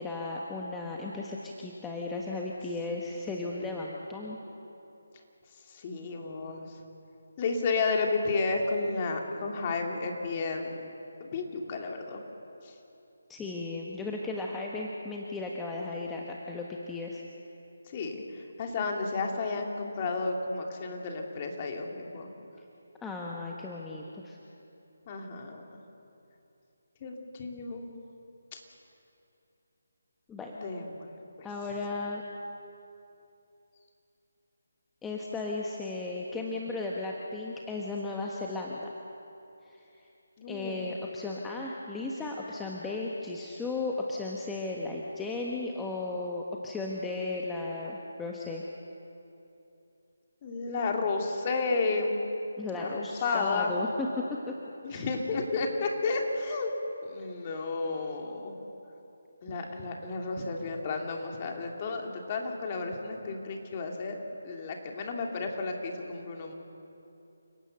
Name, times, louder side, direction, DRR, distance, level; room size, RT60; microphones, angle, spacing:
voice 1, 0.0-4.4 13.3-17.2 23.0-24.4 30.3-30.6 31.4-32.2 35.0-38.9 39.6-39.8 40.5-48.6 52.6-54.1 54.9-55.1 57.2-57.3, left 3 dB, 10° left, -2 dB, 1.3 m, -35 dB
voice 2, 5.7-6.6 7.4-10.8 11.2-12.2 12.6-12.7 17.9-18.2 18.6-22.3 25.1-25.6 27.0-27.9 28.5-28.6 30.5-31.1 40.4-40.9 50.4-52.2 52.7-53.7 54.8-56.7 57.1-58.5 59.4-64.2 64.4-66.5, left 3 dB, 30° left, 2 dB, 2.8 m, -32 dB
29.0 x 18.0 x 6.8 m, 2.8 s
figure-of-eight pair, 155°, 0 cm